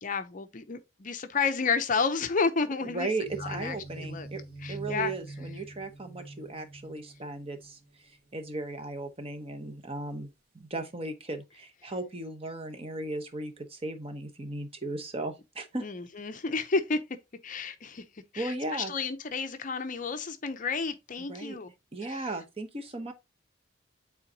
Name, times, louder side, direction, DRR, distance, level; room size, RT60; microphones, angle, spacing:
voice 1, 0.0-3.1 3.4-4.3 4.6-5.1 15.8-17.0 17.4-18.0 18.3-21.7 22.1-22.3, left 4 dB, 40° left, 0.6 m, -31 dB
voice 2, 2.8-4.4 4.7-15.8 18.4-18.9 21.3-21.6 21.9-23.1, right 2 dB, 30° right, 0.9 m, -36 dB
sound 1, 3.2-7.9, right 1 dB, 45° right, 2.0 m, -43 dB
8.7 x 3.9 x 2.8 m
head